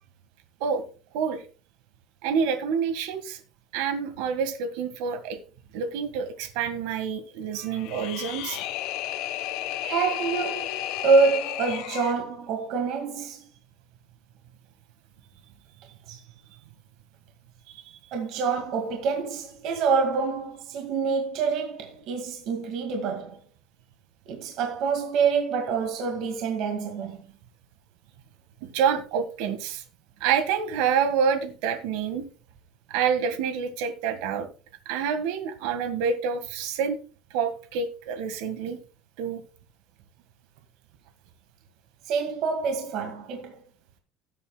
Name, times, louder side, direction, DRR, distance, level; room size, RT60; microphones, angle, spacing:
voice 1, 2.2-3.4 3.7-5.4 5.7-8.6 17.7-17.8 28.7-29.8 30.2-32.2 32.9-34.5 34.8-37.0 37.3-38.8 39.2-39.4, right 6 dB, 75° right, 1.6 m, -27 dB
sound 1, 7.7-12.2, left 13 dB, 55° left, 1.1 m, -32 dB
voice 2, 9.8-13.4 16.1-16.2 18.1-23.4 24.3-27.2 42.0-43.6, right 5 dB, 50° right, 2.0 m, -26 dB
16.5 x 8.3 x 2.3 m
cardioid pair, 175°, 0 cm